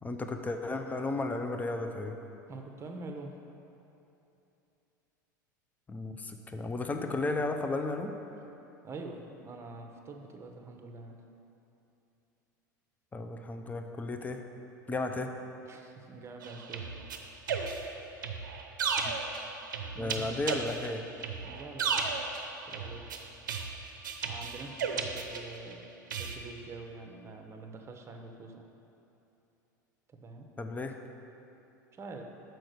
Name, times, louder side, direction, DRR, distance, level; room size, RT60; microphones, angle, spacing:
voice 1, 0.0-2.2 5.9-8.1 13.1-14.4 14.9-15.3 19.1-19.2 20.0-21.0 30.6-31.0, left 2 dB, 15° left, 5 dB, 0.6 m, -34 dB
voice 2, 2.5-3.3 8.8-11.1 15.7-16.9 19.9-20.4 21.4-22.0 22.6-23.1 24.2-25.9 26.2-28.7 30.1-30.5 31.9-32.3, right 3 dB, 25° right, 3 dB, 0.9 m, -45 dB
sound 1, 16.4-25.7 26.1-26.3, right 5 dB, 80° right, 0.6 m, -35 dB
6.4 x 4.7 x 6.3 m, 2.9 s
hypercardioid pair, 80°, 10 cm